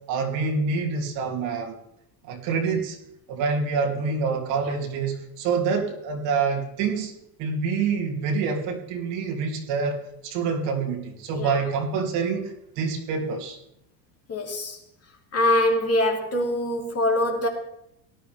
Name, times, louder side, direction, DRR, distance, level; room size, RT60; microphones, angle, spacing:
voice 1, 0.1-1.8 2.2-3.0 3.3-7.1 7.4-13.6, right 5 dB, 65° right, 0 dB, 3.0 m, -26 dB
voice 2, 14.3-14.8 15.3-17.5, left 1 dB, 30° left, 1 dB, 2.8 m, -24 dB
18.0 x 11.5 x 3.5 m, 0.81 s
supercardioid pair, 120°, 47 cm